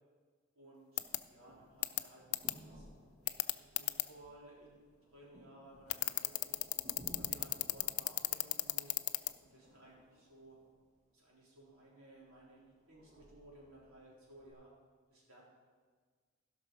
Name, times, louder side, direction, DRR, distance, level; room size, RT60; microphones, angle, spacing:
voice 1, 0.6-1.0 1.3-2.9 3.3-3.4 3.7-6.7 7.1-9.0 9.5-10.6 11.1-14.7 15.1-15.4, right 1 dB, 75° right, -5 dB, 3.8 m, -58 dB
sound 1, 1.0-1.2 1.8-2.0 2.3-2.5 3.3-4.0 5.9-9.3, left 19 dB, 75° left, 0.4 m, -32 dB
sound 2, 1.0-11.0 11.7-14.5, equal, 35° right, 1.6 m, -59 dB
15.5 x 6.0 x 5.1 m, 1.5 s
head